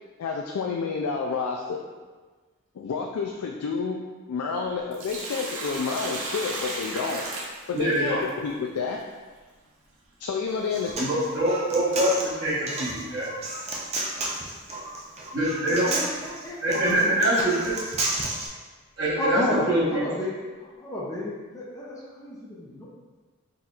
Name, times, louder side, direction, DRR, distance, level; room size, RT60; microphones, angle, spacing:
voice 1, 0.2-1.8 2.8-7.3 7.7-9.0 10.2-10.9, left 5 dB, 85° left, 0 dB, 0.4 m, -29 dB
Sink (filling or washing), 4.7-8.3 10.7-10.8 12.7-12.9 13.4-13.5 14.3-14.4 15.1-15.2 15.9-17.8, right 2 dB, 65° right, 0.7 m, -35 dB
voice 2, 7.7-8.2 11.0-13.3 15.3-15.9 16.6-17.7 19.0-19.4 19.7-20.0, right 1 dB, 50° right, -12 dB, 1.1 m, -24 dB
Human voice, 10.5-18.5, right 2 dB, 30° right, 0.5 m, -32 dB
voice 3, 15.7-16.6 19.2-20.3 20.6-22.9, left 1 dB, 15° left, -7 dB, 0.6 m, -31 dB
4.2 x 4.0 x 2.4 m, 1.4 s
head